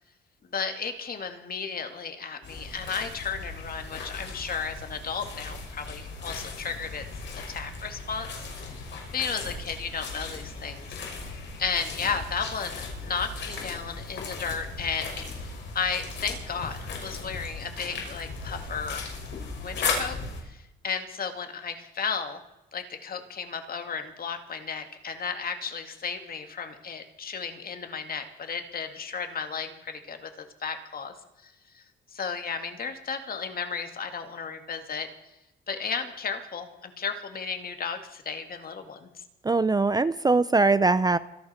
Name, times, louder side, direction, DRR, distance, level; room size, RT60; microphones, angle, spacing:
voice 1, 0.5-7.0 7.5-8.3 9.1-11.0 11.3-15.4 15.7-19.0 19.6-20.2 20.4-22.4 22.7-31.1 31.4-31.8 32.1-35.1 35.7-39.2, left 6 dB, 50° left, 6 dB, 2.3 m, -34 dB
sound 1, 2.4-20.4, left 4 dB, 65° left, 6.1 m, -37 dB
voice 2, 39.4-41.2, right 3 dB, 20° right, 15 dB, 0.5 m, -21 dB
25.5 x 11.5 x 4.5 m, 0.95 s
cardioid pair, 90°, 20 cm